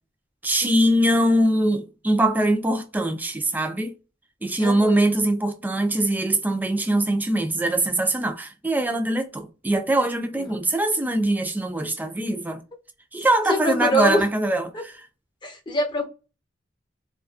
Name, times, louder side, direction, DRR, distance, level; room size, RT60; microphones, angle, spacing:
voice 1, 0.4-3.9 4.4-12.6 13.1-14.9, right 1 dB, 10° right, 0.3 m, -22 dB
voice 2, 4.6-5.0 10.3-10.5 13.5-14.3 14.7-14.8 15.4-16.1, equal, 25° left, 0.7 m, -24 dB
2.4 x 2.2 x 2.3 m
head